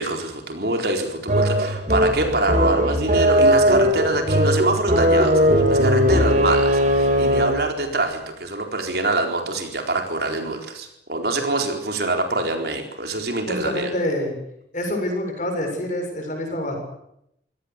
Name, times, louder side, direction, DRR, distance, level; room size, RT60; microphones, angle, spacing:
voice 1, 0.0-13.9, right 2 dB, 60° right, 4 dB, 4.3 m, -25 dB
sound 1, 1.3-7.7, equal, 45° right, 3.7 m, -18 dB
voice 2, 13.5-14.4 14.7-16.7, left 1 dB, 45° left, 3 dB, 7.5 m, -26 dB
25.5 x 17.5 x 8.5 m, 0.77 s
head